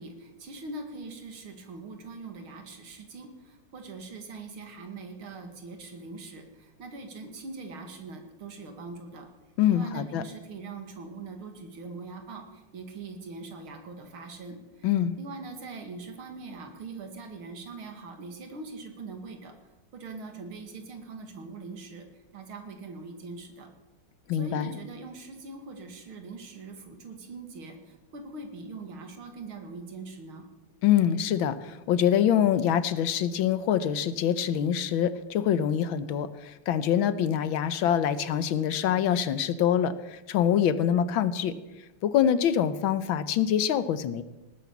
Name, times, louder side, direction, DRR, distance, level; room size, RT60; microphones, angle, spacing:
voice 1, 0.0-9.3 9.7-14.9 15.2-19.5 19.9-23.7 24.3-30.4, right 3 dB, 75° right, 5 dB, 2.9 m, -42 dB
voice 2, 9.6-10.2 14.8-15.2 24.3-24.7 30.8-41.6 42.0-44.2, left 9 dB, 70° left, 14 dB, 1.5 m, -25 dB
18.5 x 9.9 x 7.1 m, 1.0 s
omnidirectional pair, 2.4 m